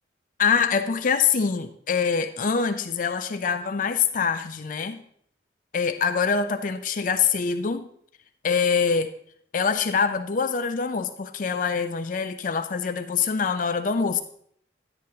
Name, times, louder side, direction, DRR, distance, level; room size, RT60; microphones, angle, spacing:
voice 1, 0.4-5.0 5.7-7.9 8.4-9.1 9.5-14.2, left 6 dB, 45° left, 8 dB, 0.5 m, -24 dB
10.5 x 8.9 x 2.8 m, 0.66 s
head